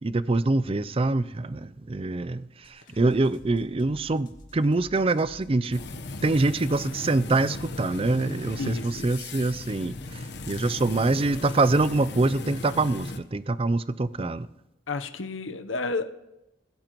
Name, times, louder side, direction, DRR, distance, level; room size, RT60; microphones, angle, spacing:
voice 1, 0.0-5.8 6.2-14.5, right 2 dB, 30° right, 15 dB, 0.5 m, -25 dB
sound 1, 2.6-12.6, left 1 dB, 45° left, 2.1 m, -49 dB
sound 2, 5.7-13.2, left 2 dB, 60° left, 1.0 m, -37 dB
voice 2, 8.6-9.1 10.1-10.2 14.2-14.3 14.9-16.0, left 3 dB, 85° left, 9 dB, 0.8 m, -31 dB
25.5 x 17.0 x 3.0 m, 0.96 s
head